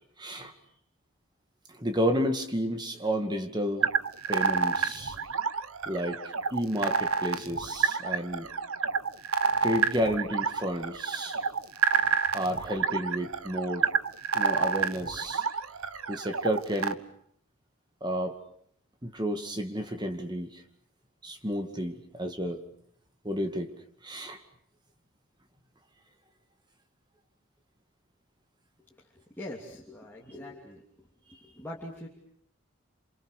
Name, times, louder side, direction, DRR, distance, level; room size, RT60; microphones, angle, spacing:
voice 1, 0.2-0.5 1.7-3.9 4.3-5.2 5.9-6.2 6.5-8.5 9.6-11.4 12.3-13.9 14.3-15.4 16.1-17.0 18.0-18.4 19.0-20.6 21.2-22.6 23.2-23.7 24.0-24.4, equal, 20° right, 6 dB, 2.2 m, -31 dB
sound 1, 3.8-16.9, right 5 dB, 85° right, 1.3 m, -29 dB
voice 2, 29.1-31.1 31.4-32.1, left 1 dB, 10° left, -4 dB, 3.1 m, -43 dB
28.0 x 28.0 x 6.7 m, 0.64 s
head